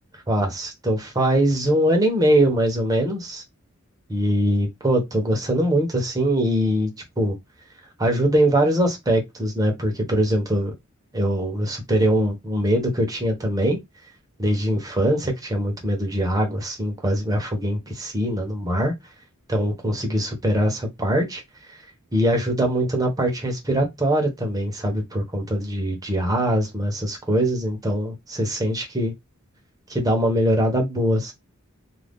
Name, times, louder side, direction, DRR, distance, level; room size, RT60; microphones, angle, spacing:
voice 1, 0.3-3.4 4.1-6.9 7.2-7.4 8.0-10.7 11.1-13.8 14.4-18.9 19.5-21.4 21.7-21.8 22.1-29.1 29.9-31.3, right 1 dB, 15° right, 0.8 m, -22 dB
2.5 x 2.3 x 3.5 m
head